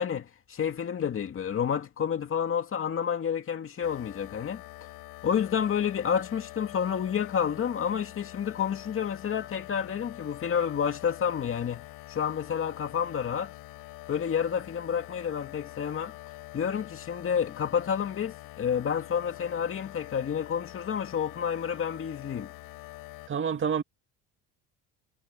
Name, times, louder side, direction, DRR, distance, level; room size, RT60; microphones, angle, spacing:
voice 1, 0.0-4.6 5.2-13.5 14.1-16.1 16.5-22.5, left 8 dB, 35° left, 2.3 m, -29 dB
sound 1, 3.8-23.3, left 19 dB, 75° left, 4.8 m, -45 dB
voice 2, 23.3-23.8, right 7 dB, 35° right, 2.1 m, -27 dB
cardioid pair, 125°, 37 cm